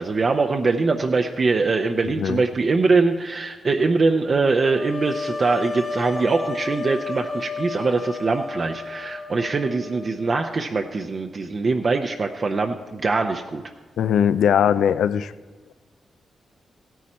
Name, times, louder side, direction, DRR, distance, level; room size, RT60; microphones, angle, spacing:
voice 1, 0.0-13.6, right 3 dB, 45° right, 4 dB, 0.6 m, -22 dB
sound 1, 4.7-10.5, left 3 dB, 25° left, 0.9 m, -32 dB
voice 2, 14.0-15.3, left 8 dB, 85° left, 14 dB, 0.4 m, -20 dB
15.5 x 9.3 x 4.3 m, 1.3 s
cardioid pair, 75°, 0 cm